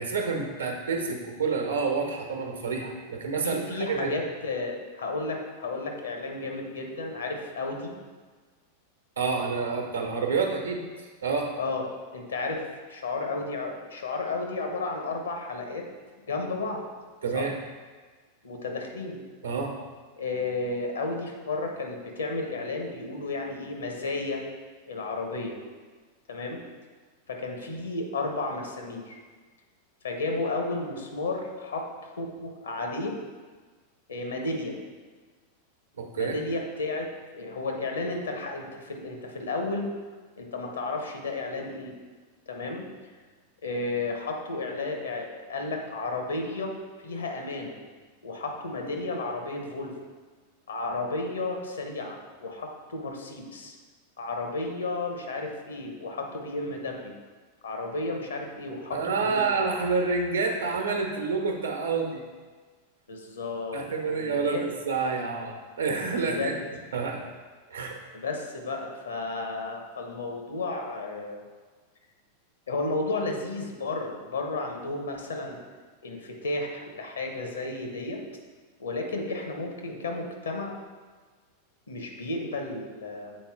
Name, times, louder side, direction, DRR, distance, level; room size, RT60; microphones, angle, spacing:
voice 1, 0.0-4.1 9.2-11.5 17.2-17.5 19.4-19.7 36.0-36.4 58.9-62.2 63.7-66.5 66.9-67.3 67.7-68.0, right 4 dB, 70° right, 3 dB, 1.0 m, -28 dB
voice 2, 3.4-7.9 11.6-11.8 12.1-15.9 16.3-16.8 17.3-17.4 18.4-19.2 20.2-24.4 24.9-25.6 26.3-26.6 27.3-29.2 30.0-31.8 32.2-33.2 34.1-34.8 36.2-39.9 40.4-41.9 42.5-42.8 43.6-46.7 47.0-47.8 48.2-49.9 50.7-53.7 54.2-57.1 57.6-59.4 63.1-64.6 66.2-66.5 68.1-71.4 72.7-75.6 76.0-76.7 77.0-78.2 78.8-80.7 81.9-83.4, left 3 dB, 70° left, 2 dB, 1.0 m, -33 dB
7.5 x 4.3 x 3.6 m, 1.4 s
figure-of-eight pair, 90°, 0 cm